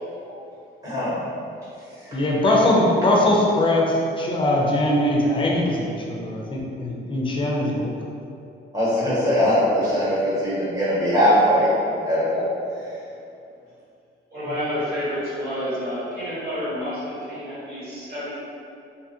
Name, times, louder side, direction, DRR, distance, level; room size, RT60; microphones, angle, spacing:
voice 1, 0.8-1.2 8.7-11.7 12.0-12.4, equal, 15° right, -11 dB, 1.1 m, -20 dB
voice 2, 2.1-7.9, left 1 dB, 25° left, -2 dB, 0.5 m, -21 dB
voice 3, 14.3-18.3, equal, 55° right, -10 dB, 1.3 m, -29 dB
2.7 x 2.4 x 2.6 m, 2.6 s
cardioid pair, 90°, 20 cm